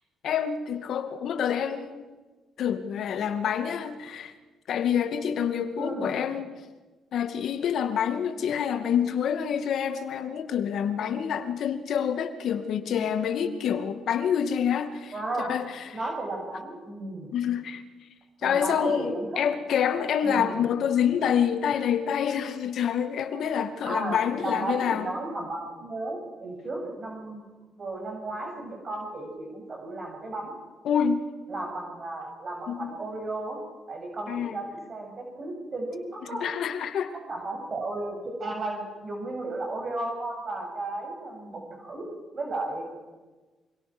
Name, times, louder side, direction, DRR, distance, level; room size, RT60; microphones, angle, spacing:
voice 1, 0.2-2.2 2.6-4.3 4.7-6.5 7.1-15.1 15.4-16.0 17.3-17.8 18.4-25.1 30.8-31.3 32.7-32.9 34.3-34.6 36.2-37.1, left 8 dB, 70° left, 8 dB, 2.1 m, -27 dB
voice 2, 5.7-6.1 15.1-17.3 18.4-19.4 20.2-20.6 23.8-27.4 27.8-30.5 31.5-33.6 33.9-36.5 37.3-42.1 42.3-42.8, right 2 dB, 40° right, 1 dB, 7.6 m, -34 dB
25.5 x 25.0 x 6.3 m, 1.3 s
cardioid pair, 90°, 0 cm